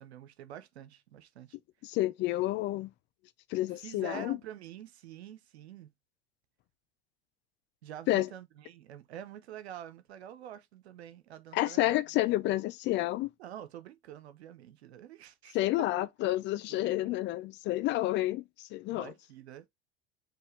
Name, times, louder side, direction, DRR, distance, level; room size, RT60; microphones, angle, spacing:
voice 1, 0.0-1.6 3.8-5.9 7.8-12.0 12.4-12.5 13.4-16.1 16.7-17.2 18.9-19.7, right 11 dB, 70° right, 0.9 m, -47 dB
voice 2, 1.8-2.9 3.5-4.4 8.1-8.3 11.5-13.3 15.5-18.4 18.7-19.1, left 16 dB, 35° left, 0.4 m, -29 dB
4.6 x 3.0 x 3.2 m
figure-of-eight pair, 80°, 33 cm